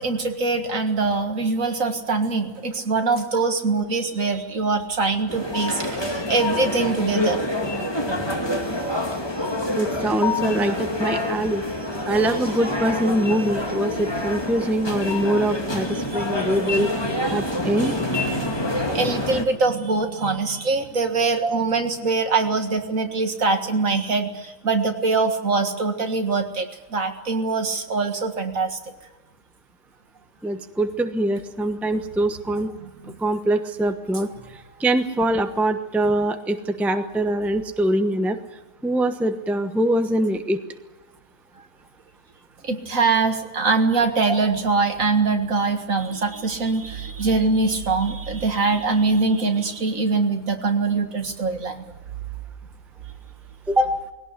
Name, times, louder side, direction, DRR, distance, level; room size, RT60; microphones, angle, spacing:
voice 1, 0.0-7.4 15.9-17.4 17.8-28.8 32.8-33.2 42.6-51.8, right 4 dB, 60° right, 6 dB, 2.2 m, -23 dB
sound 1, 5.3-19.4, left 1 dB, 15° left, 2.2 m, -27 dB
voice 2, 9.8-11.6 12.1-16.9 17.3-18.0 19.3-19.4 21.4-21.6 30.4-32.7 33.2-34.3 34.8-38.4 38.8-40.6 53.7-53.9, right 1 dB, ahead, 7 dB, 0.9 m, -23 dB
20.5 x 17.5 x 9.8 m, 1.1 s
omnidirectional pair, 1.6 m